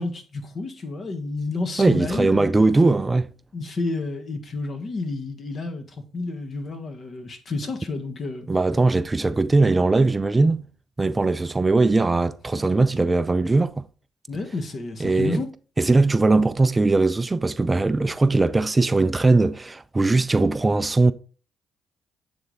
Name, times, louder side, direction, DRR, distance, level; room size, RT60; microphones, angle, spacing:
voice 1, 0.0-2.5 3.5-8.5 14.3-15.5, left 3 dB, 50° left, 1.2 m, -30 dB
voice 2, 1.8-3.3 8.5-10.6 11.0-13.9 15.0-15.4 15.8-21.1, right 3 dB, 25° right, 0.4 m, -20 dB
7.7 x 3.5 x 3.9 m
hypercardioid pair, 50°, 0 cm